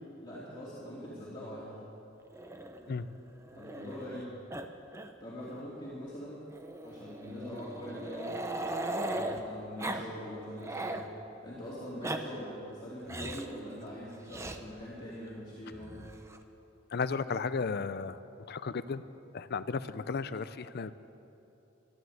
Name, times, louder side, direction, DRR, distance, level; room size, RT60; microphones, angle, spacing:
voice 1, 0.2-1.8 3.6-4.3 5.2-6.4 6.8-8.4 8.8-11.0 11.4-16.1, equal, 25° left, -9 dB, 2.7 m, -43 dB
Growling, 2.3-4.2 4.5-4.7 4.9-5.1 5.4-5.5 6.5-9.4 9.8-10.1 10.4-11.1 11.8-12.2 13.1-13.5 14.3-14.6 15.7-16.4, right 1 dB, 15° right, 0.7 m, -38 dB
voice 2, 16.9-18.2 18.5-19.0 19.3-20.9, left 5 dB, 55° left, 14 dB, 0.5 m, -34 dB
13.0 x 12.5 x 7.9 m, 3.0 s
head